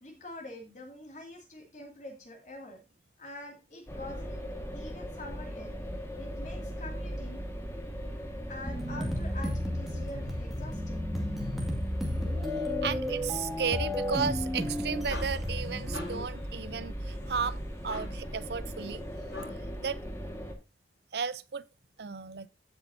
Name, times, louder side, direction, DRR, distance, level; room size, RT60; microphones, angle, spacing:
voice 1, 0.0-2.8 3.2-4.4 4.7-5.7 6.2-7.4 8.5-11.1, left 1 dB, 45° left, 2.4 m, -45 dB
sound 1, 3.9-20.6, equal, 15° left, 1.6 m, -39 dB
sound 2, 8.6-16.2, left 1 dB, ahead, 2.1 m, -33 dB
voice 2, 12.5-19.0 19.8-20.0 21.1-21.6 22.0-22.5, right 6 dB, 65° right, 0.6 m, -34 dB
sound 3, 14.8-19.8, left 2 dB, 75° left, 4.7 m, -46 dB
15.5 x 6.1 x 2.7 m
head